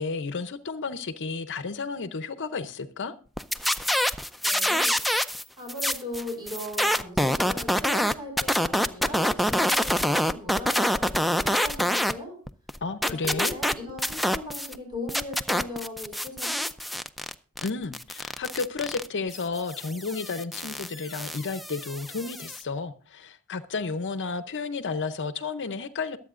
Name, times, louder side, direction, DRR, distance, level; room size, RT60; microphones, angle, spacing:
voice 1, 0.0-3.1 12.8-13.6 17.6-26.2, left 4 dB, 55° left, 0.7 m, -32 dB
sound 1, 3.4-5.4 5.7-12.1 12.5-14.8 15.1-22.6, equal, ahead, 0.4 m, -26 dB
voice 2, 4.4-5.0 5.6-12.4 13.0-16.7, left 2 dB, 20° right, 5.6 m, -38 dB
22.5 x 8.4 x 2.5 m
head